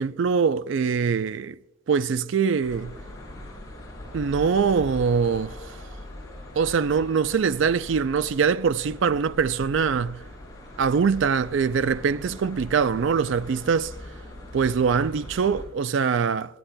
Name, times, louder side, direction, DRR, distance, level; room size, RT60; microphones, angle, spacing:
voice 1, 0.0-1.6 1.9-2.9 4.1-5.8 6.6-10.2 10.8-13.9 14.5-16.6, right 6 dB, 60° right, 0.3 m, -23 dB
sound 1, 2.6-15.6, left 1 dB, 15° left, 5.7 m, -41 dB
28.0 x 13.0 x 2.2 m
head